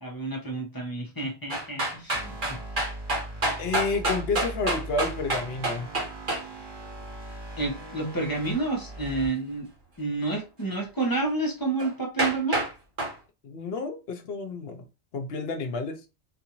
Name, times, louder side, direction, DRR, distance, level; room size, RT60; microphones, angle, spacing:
voice 1, 0.0-2.6 7.6-9.7 10.0-12.6, right 3 dB, 20° left, 1.0 m, -29 dB
sound 1, 1.5-6.4 11.8-11.9 12.2-12.7 13.0-13.1, right 1 dB, 50° right, 1.6 m, -27 dB
sound 2, 2.1-9.3, right 2 dB, 25° right, 1.0 m, -40 dB
voice 2, 3.6-5.9 13.4-14.8 15.1-16.0, left 3 dB, 65° left, 0.9 m, -30 dB
4.0 x 2.5 x 3.0 m
omnidirectional pair, 1.1 m